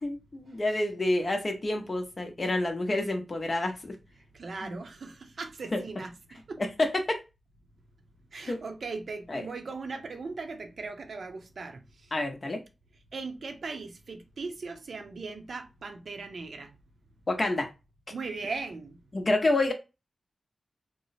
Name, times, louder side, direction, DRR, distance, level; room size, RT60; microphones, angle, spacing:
voice 1, 0.0-4.0 4.6-4.8 5.7-5.8 6.6-7.2 8.5-8.6 9.3-9.4 12.1-12.6 17.3-17.7 19.1-19.7, left 2 dB, 35° left, 0.7 m, -28 dB
voice 2, 4.3-6.6 8.3-11.8 13.1-16.7 18.1-19.0, right 4 dB, 65° right, 0.6 m, -38 dB
3.0 x 2.0 x 4.0 m
wide cardioid pair, 110°, 0 cm